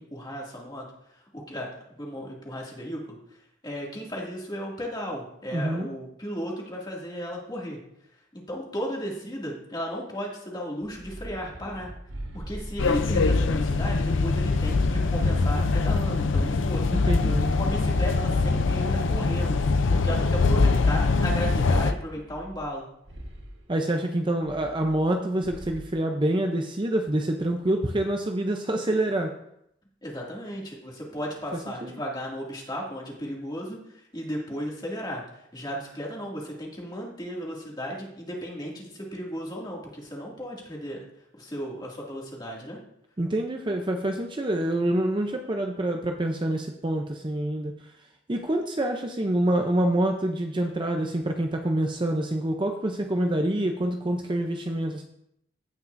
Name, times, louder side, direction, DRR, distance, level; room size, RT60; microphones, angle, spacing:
voice 1, 0.0-1.7 2.0-7.8 8.3-11.9 12.3-16.9 17.4-19.6 19.9-22.9 30.0-41.0 41.3-42.8, equal, 20° left, -3 dB, 2.3 m, -35 dB
voice 2, 5.5-5.9 16.9-17.4 23.7-29.3 31.8-31.9 43.2-47.7 48.3-55.0, right 1 dB, 25° right, 3 dB, 0.6 m, -26 dB
sound 1, 10.8-13.3 13.7-16.2 16.6-18.8 19.3-21.2 21.8-22.8 23.1-23.6 24.4-25.1 25.4-25.9, right 1 dB, 85° right, 1.6 m, -42 dB
sound 2, 12.8-21.9, left 3 dB, 80° left, 0.5 m, -23 dB
16.5 x 5.9 x 2.6 m, 0.76 s
head